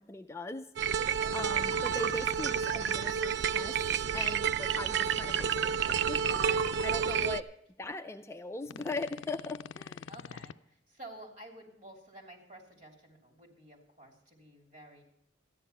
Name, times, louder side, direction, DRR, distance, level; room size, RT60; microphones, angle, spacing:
voice 1, 0.0-3.8 4.1-7.5 7.8-10.1, left 2 dB, 15° left, 6 dB, 0.4 m, -40 dB
sound 1, 0.8-7.4, right 8 dB, 65° right, 0.4 m, -30 dB
sound 2, 1.3-3.1 5.0-6.8 8.7-10.5, left 6 dB, 85° left, 0.4 m, -45 dB
voice 2, 10.1-15.0, right 1 dB, 40° right, 2 dB, 3.1 m, -52 dB
13.5 x 10.0 x 5.6 m, 0.77 s
head